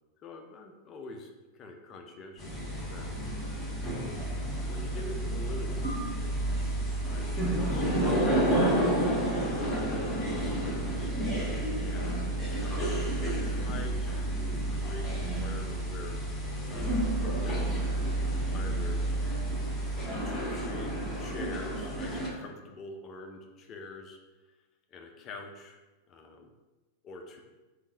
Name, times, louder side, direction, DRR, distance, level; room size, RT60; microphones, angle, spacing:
voice 1, 0.2-3.1 4.7-6.1 7.1-9.0 9.4-11.1 11.8-12.2 12.6-12.9 13.2-16.2 16.7-17.0 17.4-17.9 18.5-19.1 20.2-24.2 24.9-25.8 26.1-26.5 27.0-27.4, left 3 dB, 30° left, 3 dB, 0.5 m, -45 dB
sound 1, 2.4-22.3, right 1 dB, 10° left, 1.1 m, -30 dB
sound 2, 5.8-8.6, right 1 dB, 85° left, 0.4 m, -49 dB
3.6 x 2.6 x 3.7 m, 1.1 s
figure-of-eight pair, 90°, 0 cm